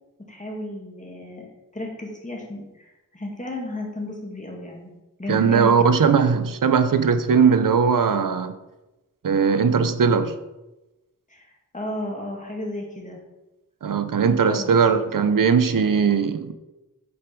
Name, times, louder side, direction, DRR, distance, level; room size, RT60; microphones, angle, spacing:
voice 1, 0.3-4.9 5.2-6.2 11.3-13.2 14.5-14.8, left 1 dB, 20° left, 0 dB, 2.3 m, -34 dB
voice 2, 5.3-8.5 9.2-10.4 13.8-16.5, right 6 dB, 70° right, 11 dB, 0.7 m, -19 dB
8.5 x 5.2 x 4.5 m, 1.0 s
wide cardioid pair, 55°, 34 cm